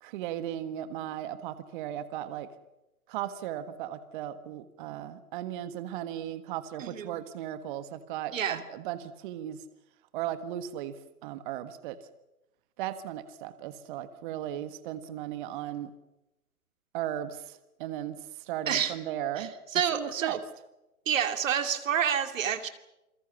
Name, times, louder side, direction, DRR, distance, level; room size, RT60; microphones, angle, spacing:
voice 1, 0.0-2.5 3.1-9.6 10.1-11.0 11.2-12.0 12.8-15.9 16.9-19.5 19.9-20.4, right 11 dB, 35° right, 12 dB, 1.5 m, -36 dB
voice 2, 8.3-8.6 18.7-18.9 19.4-19.5 19.7-20.4 21.1-22.7, right 8 dB, 60° right, 8 dB, 2.7 m, -28 dB
28.5 x 21.5 x 7.1 m, 0.95 s
hypercardioid pair, 135°, 44 cm